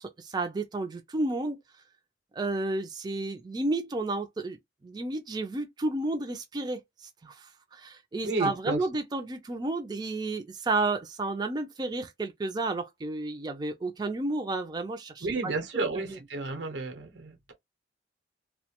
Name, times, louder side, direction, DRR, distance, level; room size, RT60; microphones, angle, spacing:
voice 1, 0.0-1.6 2.3-4.6 4.8-6.8 7.2-16.2, right 2 dB, 25° right, 0.4 m, -32 dB
voice 2, 8.2-8.8 15.2-17.5, right 3 dB, 90° right, 0.8 m, -32 dB
2.2 x 2.1 x 2.8 m
head